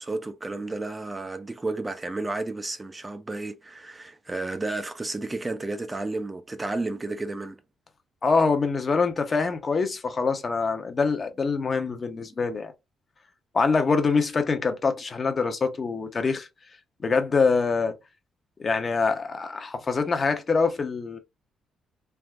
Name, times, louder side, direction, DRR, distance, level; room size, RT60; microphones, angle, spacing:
voice 1, 0.0-7.6, right 2 dB, 20° right, 0.4 m, -32 dB
voice 2, 8.2-12.7 13.5-16.5 17.0-17.9 18.6-21.2, left 4 dB, 40° left, 0.7 m, -24 dB
3.4 x 2.5 x 2.4 m
cardioid pair, 90°, 0 cm